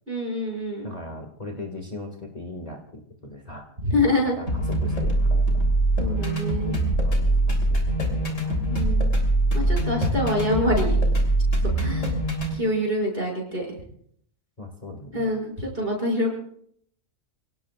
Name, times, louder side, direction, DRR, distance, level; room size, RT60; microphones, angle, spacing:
voice 1, 0.1-1.0 3.8-4.4 6.0-6.7 8.7-9.1 9.5-11.0 11.8-12.1 12.5-13.7 15.1-16.4, left 1 dB, 40° right, -1 dB, 6.8 m, -25 dB
voice 2, 0.8-3.7 4.4-5.7 6.7-8.4 14.6-15.3, left 2 dB, 30° left, 2 dB, 2.1 m, -39 dB
sound 1, 4.5-12.5, right 1 dB, 65° left, 3.8 m, -23 dB
29.5 x 18.0 x 2.4 m, 0.65 s
omnidirectional pair, 1.4 m